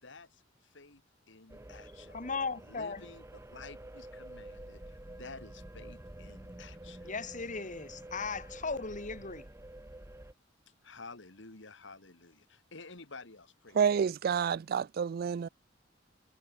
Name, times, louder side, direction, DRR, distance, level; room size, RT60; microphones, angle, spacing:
voice 1, 0.0-1.0 1.3-2.2 2.6-3.2 3.5-7.1 10.8-14.0, left 3 dB, 65° left, 2.6 m, -51 dB
sound 1, 1.5-10.3, right 1 dB, 15° right, 0.8 m, -49 dB
voice 2, 2.1-3.0 7.0-9.5, left 4 dB, 40° left, 2.0 m, -37 dB
voice 3, 13.8-15.5, right 7 dB, 50° right, 0.3 m, -29 dB
head